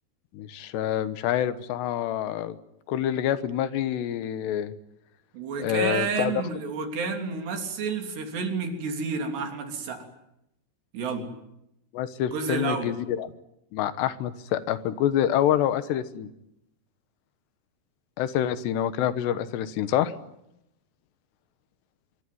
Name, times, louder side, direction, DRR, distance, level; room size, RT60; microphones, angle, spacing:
voice 1, 0.3-2.6 2.9-4.7 5.6-6.4 11.9-13.3 13.7-16.3 18.2-20.1, left 11 dB, 90° left, 13 dB, 3.4 m, -27 dB
voice 2, 5.3-10.1 10.9-11.3 12.2-12.9, right 5 dB, 80° right, 4 dB, 5.4 m, -30 dB
25.5 x 23.5 x 9.5 m, 0.84 s
omnidirectional pair, 4.8 m